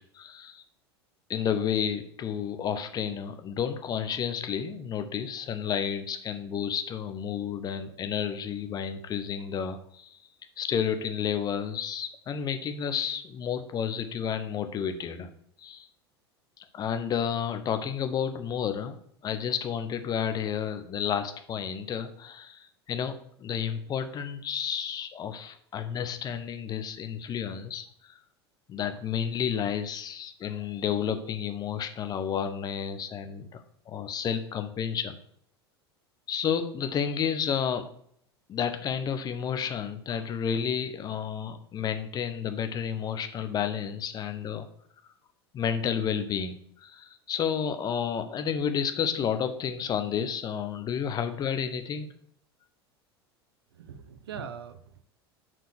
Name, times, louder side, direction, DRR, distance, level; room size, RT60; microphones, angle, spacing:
voice 1, 0.1-0.6 1.3-10.2 10.6-15.3 15.6-15.9 16.6-19.0 19.2-28.1 28.7-35.2 36.3-37.9 38.5-44.7 45.5-52.1, left 8 dB, 30° left, 8 dB, 0.9 m, -31 dB
voice 2, 53.7-55.0, right 7 dB, 65° right, 12 dB, 0.7 m, -41 dB
6.5 x 4.5 x 6.3 m, 0.65 s
figure-of-eight pair, 80°, 14 cm